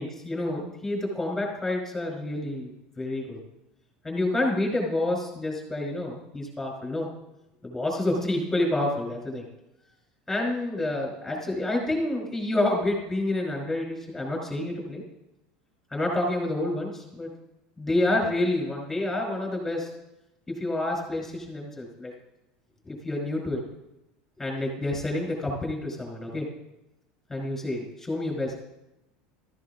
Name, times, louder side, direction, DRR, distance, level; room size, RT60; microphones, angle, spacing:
voice 1, 0.0-3.4 4.0-7.1 7.6-9.5 10.3-15.0 15.9-17.3 17.8-19.9 20.5-22.1 22.8-23.6 24.4-26.5 27.3-28.6, left 1 dB, 10° left, -2 dB, 5.2 m, -28 dB
14.0 x 13.5 x 2.9 m, 0.91 s
supercardioid pair, 120°, 3 cm